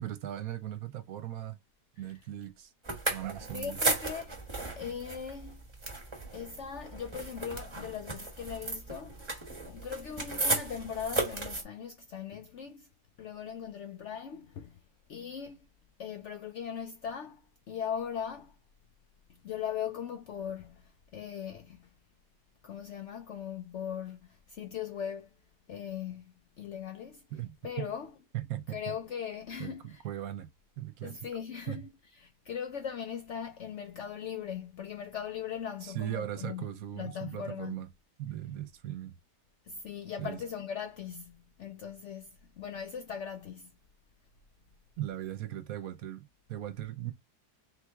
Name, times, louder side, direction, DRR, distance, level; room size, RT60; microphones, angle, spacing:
voice 1, 0.0-1.6 2.0-2.7 3.1-3.8 27.3-27.9 28.3-28.9 29.6-30.5 30.8-31.2 31.7-31.8 35.8-37.9 38.2-39.2 40.2-40.4 45.0-47.1, right 12 dB, 70° right, 1.1 m, -38 dB
sound 1, 2.8-11.6, right 3 dB, 20° right, 0.9 m, -35 dB
voice 2, 3.5-4.4 4.8-5.6 6.3-9.3 9.7-12.9 13.2-14.8 15.1-15.6 16.0-18.6 19.3-21.9 22.6-25.4 25.7-27.2 27.6-28.1 28.7-30.0 31.0-31.8 32.1-36.6 37.0-37.7 39.6-43.7, left 8 dB, 70° left, 0.7 m, -39 dB
3.7 x 3.1 x 3.4 m
omnidirectional pair, 1.7 m